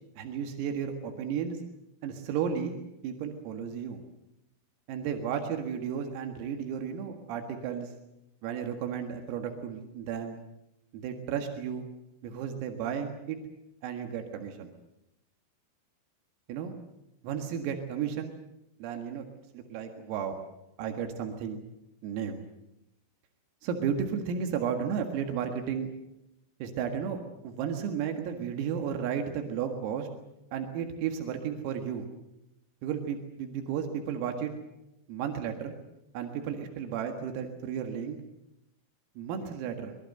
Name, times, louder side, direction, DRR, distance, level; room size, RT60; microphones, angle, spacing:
voice 1, 0.2-1.6 2.0-4.0 4.9-7.9 8.4-10.4 10.9-11.9 12.2-13.4 13.8-14.7 16.5-16.7 17.2-18.3 18.8-19.3 19.5-20.4 20.8-21.6 22.0-22.4 23.6-25.9 26.6-27.2 27.4-30.1 30.5-32.1 32.8-34.5 35.1-35.8 36.1-38.2 39.2-40.0, right 7 dB, 85° right, 5 dB, 4.5 m, -33 dB
24.5 x 22.0 x 7.8 m, 0.88 s
omnidirectional pair, 5.9 m